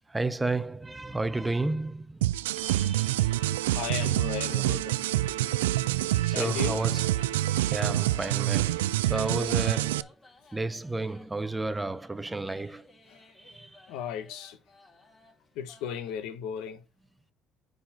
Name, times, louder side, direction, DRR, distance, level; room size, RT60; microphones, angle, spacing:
voice 1, 0.1-2.3 2.5-3.3 6.3-10.1 10.5-12.9 13.4-13.9, right 2 dB, 15° right, 0.6 m, -32 dB
sound 1, 2.2-10.0, right 15 dB, 85° right, 0.3 m, -27 dB
sound 2, 2.6-16.2, left 3 dB, 30° left, 4.3 m, -56 dB
voice 2, 3.7-5.0 6.3-6.8 13.1-13.2 13.9-14.6 15.5-16.8, left 8 dB, 70° left, 1.3 m, -35 dB
9.8 x 4.1 x 5.0 m
hypercardioid pair, 65°, 0 cm